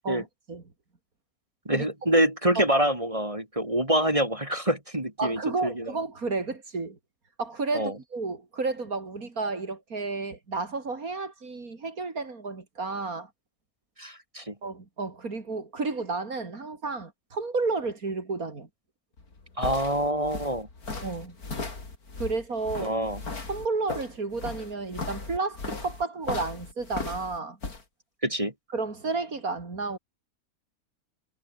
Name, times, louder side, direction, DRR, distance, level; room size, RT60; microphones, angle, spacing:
voice 1, 0.0-0.6 1.7-1.9 2.6-2.7 5.2-7.0 7.4-13.3 14.6-18.7 21.0-21.4 22.2-22.9 23.5-27.6 28.7-30.0, right 3 dB, 70° right, 3.7 m, -31 dB
voice 2, 1.7-5.9 7.7-7.9 14.0-14.5 19.6-20.7 22.8-23.2 28.2-28.5, right 1 dB, 20° right, 3.7 m, -26 dB
sound 1, 19.2-27.8, left 3 dB, 80° left, 4.1 m, -37 dB
omnidirectional pair, 1.6 m